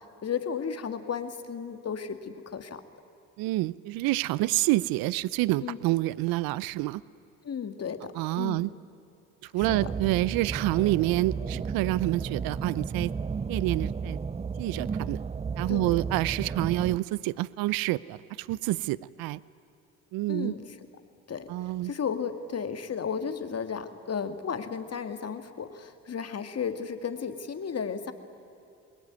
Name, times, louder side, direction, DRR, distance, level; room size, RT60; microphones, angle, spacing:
voice 1, 0.2-2.8 5.6-5.8 7.4-8.6 9.6-9.9 15.7-16.0 20.3-20.8 21.3-21.5 21.8-28.1, left 6 dB, 45° left, 9 dB, 2.2 m, -34 dB
voice 2, 3.4-7.0 8.1-8.7 9.4-13.1 13.5-14.2 14.6-15.2 15.6-19.4 20.1-20.5 21.5-21.9, right 18 dB, 75° right, 20 dB, 0.7 m, -28 dB
sound 1, 9.6-17.0, right 5 dB, 20° right, 0.5 m, -33 dB
27.0 x 21.0 x 9.5 m, 2.8 s
supercardioid pair, 65°, 36 cm